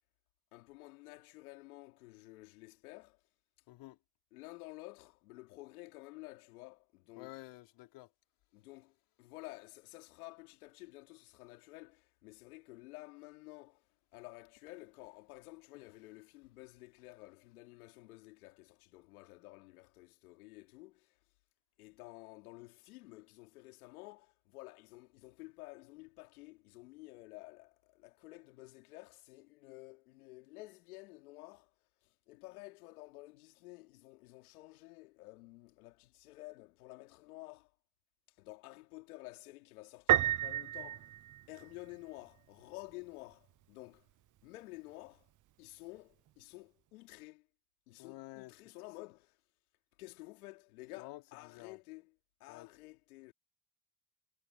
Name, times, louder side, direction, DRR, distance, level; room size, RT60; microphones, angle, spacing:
voice 1, 0.5-3.2 4.3-7.3 8.5-21.2 21.8-31.7 32.0-37.7 38.3-41.1 41.5-44.1 44.4-45.3 45.6-47.5 47.9-49.4 50.0-52.1 52.4-53.3, left 21 dB, 90° left, 3.6 m, -52 dB
voice 2, 3.7-4.0 7.2-8.1 48.0-48.5 51.0-51.8 52.5-52.7, left 19 dB, 75° left, 4.0 m, -50 dB
Piano, 40.1-41.9, right 13 dB, 45° right, 0.6 m, -31 dB
hypercardioid pair, 65°, 43 cm